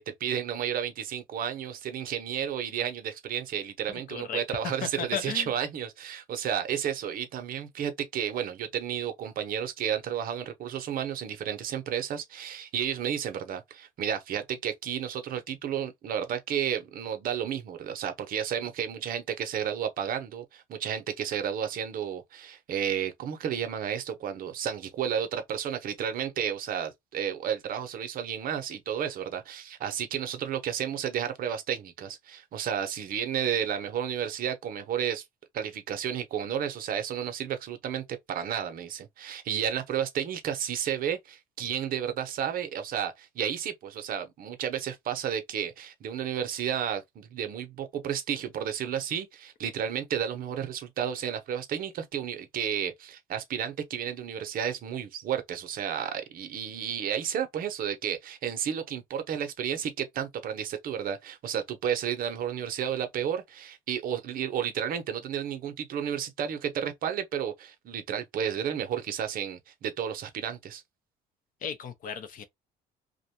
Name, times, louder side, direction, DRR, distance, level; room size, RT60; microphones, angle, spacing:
voice 1, 0.0-35.2 35.5-70.8, right 9 dB, 55° right, 0.6 m, -32 dB
voice 2, 3.9-4.4 4.8-5.5 71.6-72.4, left 8 dB, 55° left, 0.6 m, -35 dB
2.5 x 2.1 x 2.8 m
cardioid pair, 110°, 17 cm